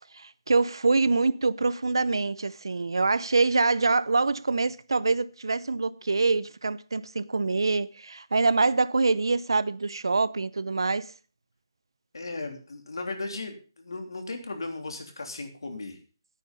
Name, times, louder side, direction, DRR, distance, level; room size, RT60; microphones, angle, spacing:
voice 1, 0.1-11.1, right 3 dB, 90° right, 0.7 m, -25 dB
voice 2, 12.1-16.0, left 3 dB, 80° left, 3.1 m, -36 dB
10.0 x 9.3 x 5.3 m
hypercardioid pair, 175°, 2 cm